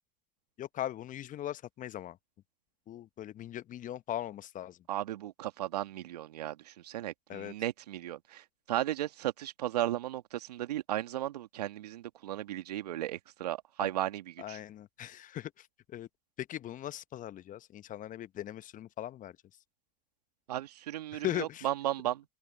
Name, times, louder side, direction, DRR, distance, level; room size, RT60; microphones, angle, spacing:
voice 1, 0.6-2.2 2.9-4.8 7.3-7.5 13.8-13.9 14.4-15.7 15.9-16.1 16.4-19.3 21.1-21.7, left 12 dB, 40° left, 1.1 m, -39 dB
voice 2, 4.9-8.4 8.7-14.6 20.5-22.2, right 13 dB, 80° right, 1.9 m, -35 dB
open air
hypercardioid pair, 75°, 20 cm